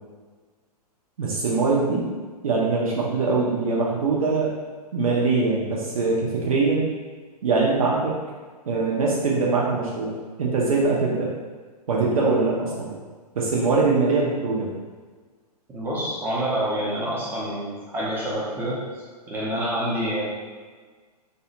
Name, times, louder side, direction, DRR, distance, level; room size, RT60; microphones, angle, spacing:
voice 1, 1.2-2.1 2.4-4.6 4.9-6.9 7.4-8.1 8.7-10.1 10.4-11.3 11.9-12.9 13.3-14.7, right 3 dB, 60° right, -4 dB, 0.6 m, -22 dB
voice 2, 15.7-18.8 19.3-20.2, right 1 dB, 10° right, -7 dB, 0.7 m, -27 dB
2.7 x 2.2 x 2.7 m, 1.5 s
figure-of-eight pair, 110°, 21 cm